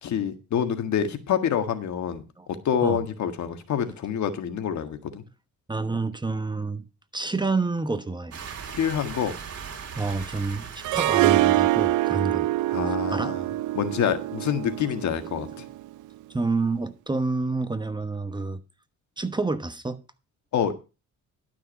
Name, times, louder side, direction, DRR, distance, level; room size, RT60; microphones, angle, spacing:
voice 1, 0.0-2.2 2.6-5.2 8.7-9.3 12.7-13.4 13.7-15.6 20.5-20.7, left 8 dB, 70° left, 1.7 m, -27 dB
voice 2, 5.7-6.9 7.1-8.4 9.9-12.5 13.1-13.3 16.3-18.6 19.2-20.0, right 3 dB, 15° right, 1.1 m, -28 dB
sound 1, 8.3-12.2, right 7 dB, 50° right, 3.0 m, -39 dB
Harp, 10.8-15.9, right 16 dB, 80° right, 0.5 m, -25 dB
12.0 x 6.1 x 5.4 m
cardioid pair, 90°, 30 cm